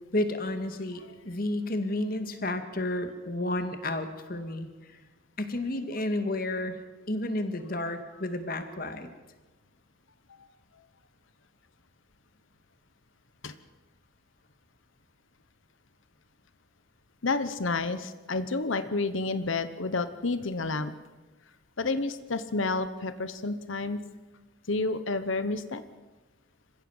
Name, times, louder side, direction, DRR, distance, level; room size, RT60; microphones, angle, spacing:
voice 1, 0.1-4.7 5.4-6.8 7.1-9.1, left 1 dB, 45° left, 8 dB, 2.1 m, -31 dB
voice 2, 17.2-20.9 21.8-24.0 24.7-25.8, left 3 dB, 75° left, 11 dB, 1.1 m, -30 dB
26.5 x 16.0 x 7.3 m, 1.2 s
head